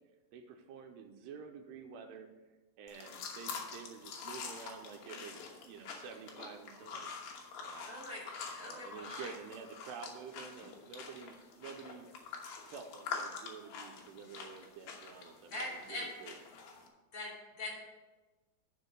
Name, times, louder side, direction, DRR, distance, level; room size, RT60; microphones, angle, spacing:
voice 1, 0.3-2.3 2.8-7.1 7.6-8.0 8.5-12.1 12.7-16.4, right 6 dB, 85° right, 5 dB, 2.7 m, -49 dB
sound 1, 2.9-16.9, left 5 dB, 65° left, 2.4 m, -46 dB
voice 2, 7.9-9.3 15.5-16.1 17.1-17.7, left 1 dB, 35° left, -6 dB, 3.7 m, -42 dB
11.5 x 4.5 x 6.5 m, 1.2 s
omnidirectional pair, 4.9 m